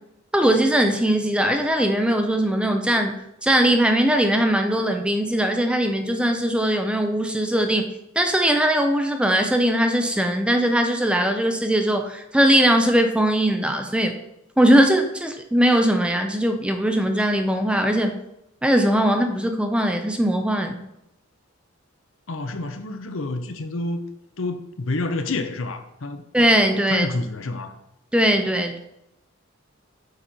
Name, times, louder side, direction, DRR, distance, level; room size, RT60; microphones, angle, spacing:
voice 1, 0.3-3.2 3.4-7.9 8.2-14.1 14.6-18.2 18.6-20.8 26.3-27.1 28.1-28.8, right 1 dB, 5° right, 5 dB, 0.5 m, -20 dB
voice 2, 22.3-24.0 24.4-26.2 26.9-27.8, left 2 dB, 70° left, 8 dB, 0.7 m, -28 dB
7.9 x 4.1 x 4.4 m, 0.86 s
head